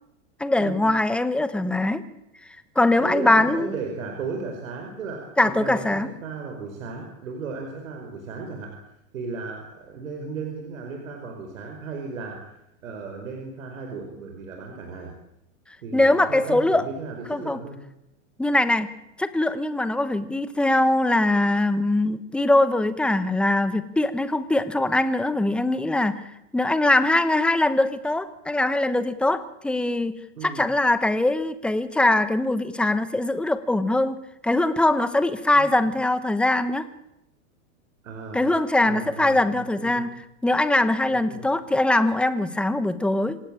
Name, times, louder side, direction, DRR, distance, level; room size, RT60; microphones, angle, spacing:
voice 1, 0.4-2.0 2.8-3.7 5.4-6.1 15.9-16.8 17.3-17.6 18.4-18.9 19.2-26.2 26.5-30.1 30.4-34.2 34.4-36.8 38.3-40.1 40.4-43.4, left 2 dB, 5° left, 12 dB, 0.9 m, -22 dB
voice 2, 3.0-8.8 9.1-15.2 15.8-17.8 30.3-30.6 35.5-35.9 38.0-38.5 38.8-40.1 41.1-41.5, right 4 dB, 80° right, 3 dB, 5.1 m, -35 dB
26.0 x 17.0 x 8.8 m, 0.84 s
supercardioid pair, 150°, 39 cm